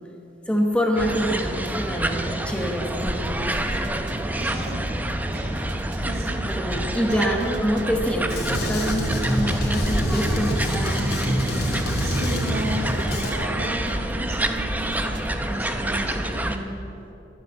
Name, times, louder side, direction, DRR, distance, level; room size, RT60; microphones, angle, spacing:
voice 1, 0.5-3.7 6.5-11.5, equal, 5° left, 1 dB, 1.2 m, -26 dB
sound 1, 1.0-16.6, right 1 dB, 10° right, 0.8 m, -28 dB
sound 2, 2.9-15.4, right 1 dB, 75° right, 1.1 m, -41 dB
voice 2, 4.4-4.9 5.3-5.6 6.0-6.5 6.9-7.7 12.0-16.8, right 1 dB, 55° right, 0 dB, 2.7 m, -34 dB
Drum kit, 8.3-13.3, equal, 55° left, 2.8 m, -26 dB
21.5 x 8.0 x 7.8 m, 2.9 s
head